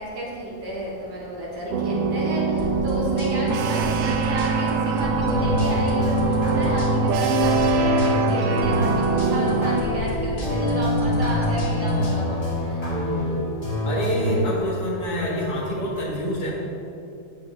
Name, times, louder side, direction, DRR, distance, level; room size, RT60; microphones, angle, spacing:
voice 1, 0.0-12.8, right 1 dB, 85° right, -6 dB, 2.6 m, -32 dB
sound 1, 1.7-9.8, right 4 dB, 70° right, 0.9 m, -23 dB
sound 2, 2.6-12.2, equal, 45° left, 1.3 m, -33 dB
sound 3, 5.2-14.4, left 1 dB, 15° left, 1.4 m, -25 dB
voice 2, 12.9-13.5 13.9-16.5, left 1 dB, 70° left, -3 dB, 2.1 m, -27 dB
8.8 x 7.6 x 3.1 m, 2.8 s
omnidirectional pair, 1.7 m